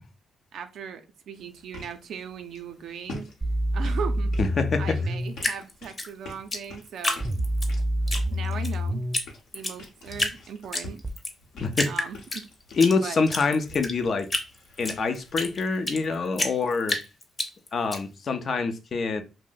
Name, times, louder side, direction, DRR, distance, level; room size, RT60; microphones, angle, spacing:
voice 1, 0.5-3.3 3.7-4.3 4.8-7.2 8.3-9.0 9.5-11.0 11.8-12.4 12.9-13.2, right 7 dB, 75° right, 0.4 m, -38 dB
sound 1, 1.3-16.1, left 2 dB, 80° left, 0.8 m, -47 dB
sound 2, 3.4-5.4 7.2-9.2 11.0-11.1, equal, 15° right, 0.5 m, -27 dB
voice 2, 4.4-5.0 11.6-11.9 12.8-14.3 14.8-17.0 17.7-19.2, left 4 dB, 55° left, 0.5 m, -25 dB
Drip, 5.4-7.7 8.1-8.7 9.1-9.3 9.5-10.4 10.7-11.3 11.7-12.9 13.3-16.0 16.4-18.0, left 2 dB, 30° left, 0.7 m, -29 dB
2.6 x 2.0 x 3.7 m
cardioid pair, 70°, 0 cm